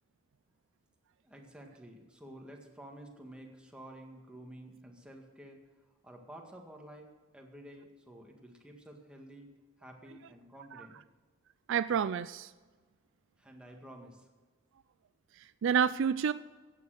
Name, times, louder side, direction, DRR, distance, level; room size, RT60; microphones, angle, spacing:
voice 1, 1.2-5.6 6.0-9.5 9.8-11.0 13.4-14.3, right 1 dB, 5° right, 1 dB, 1.9 m, -51 dB
voice 2, 11.7-12.5 15.4-16.3, right 7 dB, 60° right, 15 dB, 0.3 m, -29 dB
14.0 x 9.1 x 6.5 m, 1.3 s
head